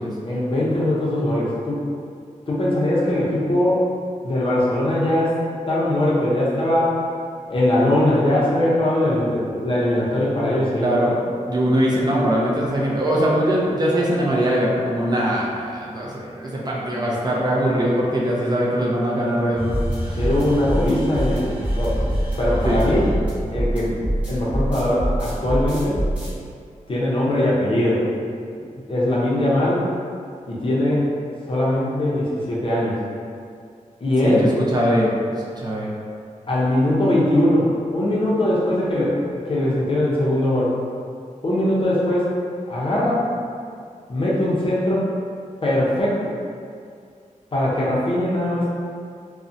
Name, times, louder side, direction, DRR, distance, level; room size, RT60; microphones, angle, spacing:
voice 1, 0.3-1.8 2.5-3.8 4.2-5.4 5.7-7.0 7.5-10.9 20.2-22.0 22.4-23.1 23.5-24.0 24.3-26.0 26.9-28.0 28.9-29.8 30.5-31.1 31.5-33.0 34.0-34.4 36.5-39.2 39.5-40.7 41.4-42.3 42.7-43.2 44.1-45.1 45.6-46.3 47.5-48.7, left 1 dB, 40° left, -6 dB, 0.6 m, -21 dB
voice 2, 10.8-11.1 11.5-20.2 22.6-22.8 34.2-35.9, equal, 30° right, -5 dB, 0.4 m, -21 dB
sound 1, 19.5-26.3, right 1 dB, 10° right, 0.9 m, -24 dB
2.6 x 2.1 x 2.5 m, 2.3 s
wide cardioid pair, 115°, 13 cm